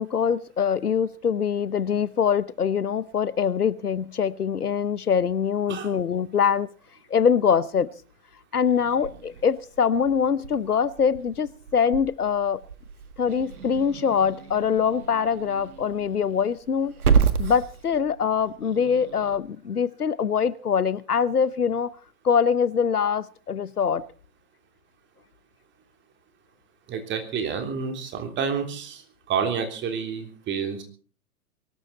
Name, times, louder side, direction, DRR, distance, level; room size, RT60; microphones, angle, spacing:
voice 1, 0.0-6.7 7.1-7.9 8.5-12.6 13.2-17.0 17.4-21.9 22.2-24.1, left 7 dB, 80° left, 0.9 m, -23 dB
Growling / Hiss, 8.6-19.4, right 6 dB, 75° right, 1.7 m, -31 dB
voice 2, 26.9-29.0 29.3-30.8, right 6 dB, 25° right, 3.4 m, -29 dB
22.5 x 12.5 x 4.2 m
figure-of-eight pair, 105°, 45 cm